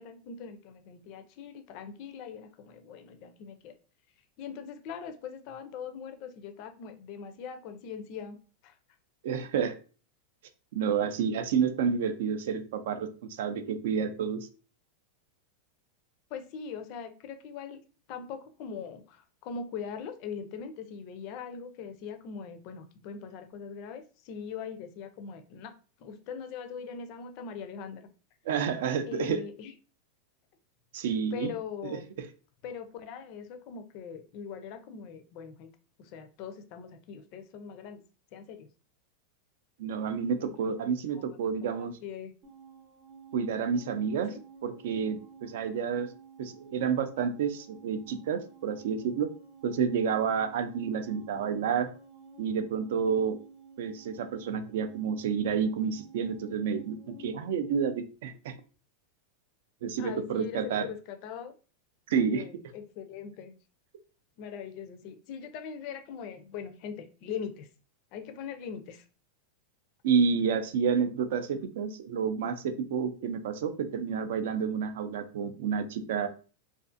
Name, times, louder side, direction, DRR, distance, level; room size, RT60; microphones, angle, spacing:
voice 1, 0.0-3.7 4.4-8.4 8.6-8.7 16.3-17.8 18.1-25.7 26.0-28.0 29.0-29.7 31.3-32.1 32.6-35.7 36.0-38.0 38.3-38.7 40.4-40.7 41.8-42.3 44.3-44.4 54.5-54.7 60.0-61.5 62.2-63.5 64.4-67.7 68.1-69.0, left 6 dB, 45° left, 8 dB, 0.4 m, -41 dB
voice 2, 9.2-9.8 10.7-14.5 28.5-29.4 30.9-31.5 39.8-41.9 43.3-44.3 44.6-46.1 46.4-49.3 49.6-51.9 52.4-53.4 53.8-58.5 59.8-60.9 62.1-62.4 70.0-76.3, right 6 dB, 70° right, 9 dB, 0.4 m, -29 dB
sound 1, 42.4-57.8, right 3 dB, 35° right, 0.7 m, -52 dB
2.4 x 2.4 x 2.5 m, 0.37 s
supercardioid pair, 160°, 0 cm